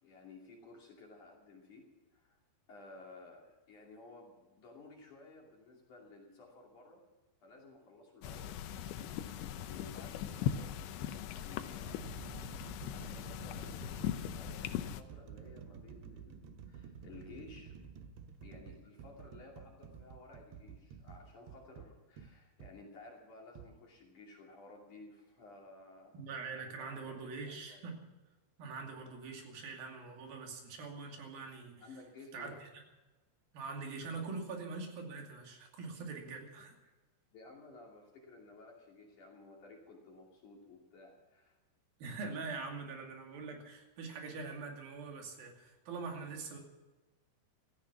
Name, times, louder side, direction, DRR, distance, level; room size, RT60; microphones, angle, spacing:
voice 1, 0.0-2.4 2.7-7.0 7.4-8.5 9.6-10.9 11.2-12.1 12.9-17.8 18.4-26.2 26.7-27.8 31.8-32.6 37.3-41.6, left 3 dB, 50° left, -1 dB, 3.8 m, -55 dB
sound 1, 8.2-15.0, left 10 dB, 90° left, 3.2 m, -39 dB
sound 2, 9.5-9.8 10.7-10.8 11.5-22.8 23.6-23.7, right 7 dB, 75° right, 2.9 m, -51 dB
voice 2, 26.1-28.0 28.6-31.8 32.3-32.7 33.5-36.7 42.0-46.6, right 4 dB, 60° right, 2 dB, 4.2 m, -43 dB
16.5 x 14.5 x 6.0 m, 1.2 s
omnidirectional pair, 5.1 m